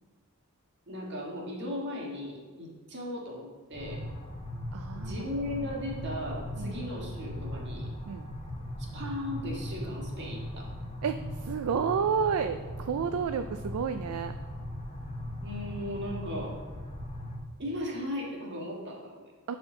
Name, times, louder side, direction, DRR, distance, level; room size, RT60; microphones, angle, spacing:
voice 1, 0.9-4.0 4.9-7.9 8.9-10.7 15.4-16.6 17.6-19.3, left 1 dB, 55° right, -1 dB, 1.6 m, -37 dB
sound 1, 3.7-17.4, equal, 30° left, 1.0 m, -39 dB
voice 2, 4.7-5.2 6.6-6.8 8.1-8.3 11.0-14.3 19.5-19.6, right 6 dB, 70° right, 9 dB, 0.3 m, -30 dB
11.0 x 4.3 x 3.9 m, 1.4 s
head